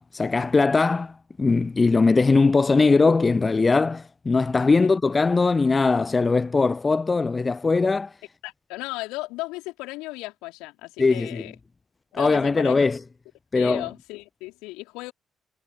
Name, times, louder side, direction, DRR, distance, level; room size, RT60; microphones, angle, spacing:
voice 1, 0.0-8.2 11.0-11.4 12.1-13.0 13.5-13.9, left 4 dB, 30° left, 0.4 m, -20 dB
voice 2, 8.4-11.6 12.1-12.9 13.5-15.1, left 22 dB, 70° left, 4.1 m, -35 dB
figure-of-eight pair, 40°, 0 cm